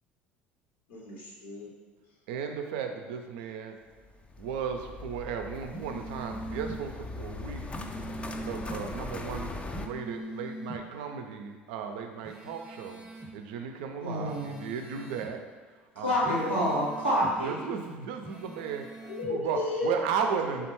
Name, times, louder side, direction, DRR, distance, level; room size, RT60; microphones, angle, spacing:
voice 1, 0.9-1.7 19.0-19.9 20.2-20.7, left 3 dB, 70° left, -3 dB, 0.7 m, -35 dB
voice 2, 2.3-3.8 4.4-7.6 8.4-13.0 13.3-15.4 16.0-16.3 17.4-18.9 19.3-19.6 19.8-20.7, right 6 dB, 65° right, 5 dB, 0.4 m, -35 dB
sound 1, 4.0-9.9, left 3 dB, 20° left, 0.3 m, -40 dB
sound 2, 5.7-6.8 7.7-8.8 9.7-10.8 12.2-13.3 14.2-15.3 16.2-17.3 18.2-19.3, right 2 dB, 15° right, 0.7 m, -42 dB
voice 3, 14.0-14.6 16.0-17.5, equal, 90° left, -7 dB, 1.0 m, -27 dB
3.7 x 3.3 x 3.0 m, 1.4 s
figure-of-eight pair, 60°, 6 cm